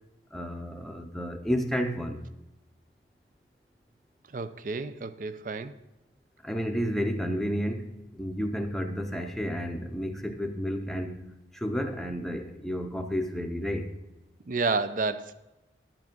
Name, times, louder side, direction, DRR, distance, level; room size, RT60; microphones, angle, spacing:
voice 1, 0.3-2.2 6.4-13.9, equal, ahead, 4 dB, 0.7 m, -31 dB
voice 2, 4.3-5.7 14.5-15.3, right 4 dB, 45° right, 13 dB, 0.5 m, -30 dB
11.0 x 6.0 x 5.2 m, 0.99 s
head